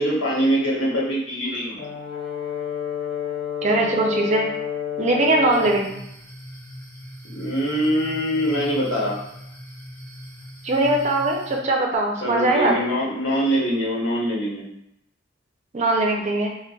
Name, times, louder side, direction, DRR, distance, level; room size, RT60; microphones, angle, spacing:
voice 1, 0.0-1.8 7.3-9.1 12.2-14.6, equal, 85° left, -5 dB, 1.0 m, -23 dB
Brass instrument, 1.8-5.9, left 8 dB, 55° left, 0.5 m, -29 dB
voice 2, 3.6-4.5 5.0-5.9 10.6-12.7 15.7-16.5, right 2 dB, 35° right, 0 dB, 0.4 m, -21 dB
sound 1, 5.5-11.6, equal, 15° left, 0.6 m, -40 dB
3.8 x 2.0 x 2.3 m, 0.78 s
head